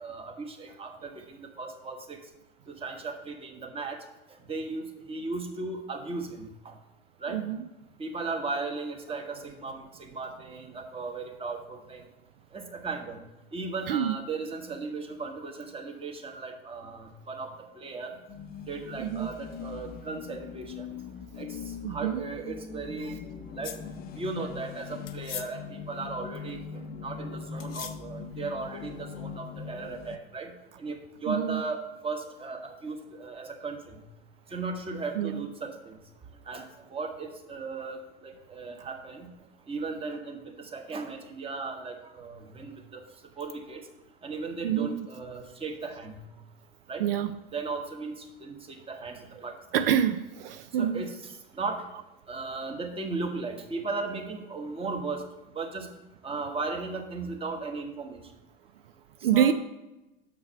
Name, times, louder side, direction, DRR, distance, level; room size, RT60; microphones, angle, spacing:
voice 1, 0.0-2.2 2.7-4.0 4.5-6.7 7.2-7.4 8.0-12.0 12.5-13.2 13.5-18.2 18.7-20.9 21.4-23.2 23.6-23.7 24.1-26.6 27.0-34.0 34.5-36.0 36.5-36.6 36.9-39.3 39.7-43.0 43.4-43.8 44.2-46.2 46.9-47.0 47.5-49.9 50.8-51.8 52.3-55.2 55.5-55.9 56.2-58.2 59.2-59.5, right 3 dB, 20° right, 1.2 m, -36 dB
sound 1, 18.3-30.2, left 6 dB, 30° left, 0.5 m, -41 dB
voice 2, 19.0-19.4 21.8-22.2 31.3-31.6 35.2-35.4 44.6-45.1 47.0-47.3 49.7-51.1 59.2-59.5, right 9 dB, 75° right, 0.4 m, -26 dB
sound 2, 23.6-23.8 25.1-25.5 27.6-28.0, left 10 dB, 90° left, 0.5 m, -39 dB
6.7 x 4.6 x 5.6 m
hypercardioid pair, 90°, 29 cm